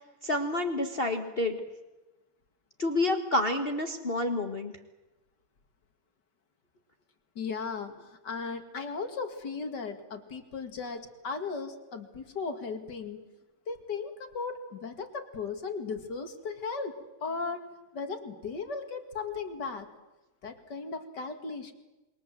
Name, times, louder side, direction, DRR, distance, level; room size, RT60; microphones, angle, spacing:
voice 1, 0.0-1.6 2.8-4.7, left 2 dB, 30° left, 5 dB, 1.5 m, -29 dB
voice 2, 7.4-13.2 13.7-17.6 17.9-19.9 20.4-21.7, left 4 dB, 60° left, 7 dB, 2.7 m, -36 dB
28.0 x 22.5 x 7.7 m, 1.1 s
omnidirectional pair, 2.1 m